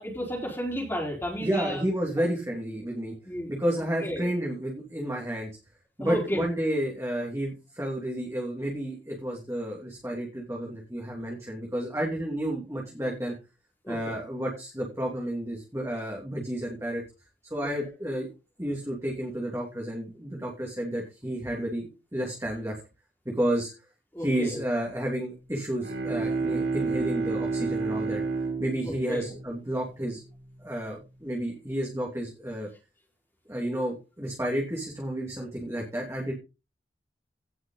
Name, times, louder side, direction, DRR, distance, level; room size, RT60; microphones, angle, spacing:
voice 1, 0.0-1.8 3.3-3.5 4.0-4.3 6.0-6.4 13.8-14.0 17.6-17.7 24.1-24.7 28.8-29.3, equal, 15° left, -2 dB, 4.0 m, -32 dB
voice 2, 1.4-3.1 3.5-5.5 6.0-13.3 13.9-17.0 17.5-18.3 18.6-22.8 23.2-23.7 24.2-28.2 28.6-30.2 30.6-32.7 33.5-36.3, right 1 dB, 15° right, -2 dB, 2.8 m, -31 dB
Bowed string instrument, 25.6-30.3, right 4 dB, 60° right, 4.8 m, -30 dB
17.5 x 6.2 x 4.0 m, 0.29 s
head